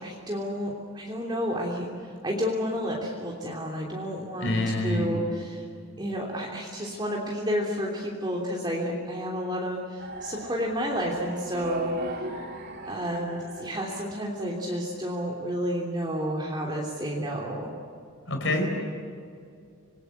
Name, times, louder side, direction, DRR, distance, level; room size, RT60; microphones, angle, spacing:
voice 1, 0.0-4.5 4.8-5.6 6.0-11.9 12.8-17.7, equal, 20° right, -3 dB, 3.1 m, -31 dB
voice 2, 4.4-5.1 18.3-18.7, left 1 dB, 60° left, 3 dB, 4.6 m, -26 dB
sound 1, 10.0-14.9, right 2 dB, 50° right, 2.7 m, -39 dB
26.5 x 21.5 x 8.4 m, 2.4 s
head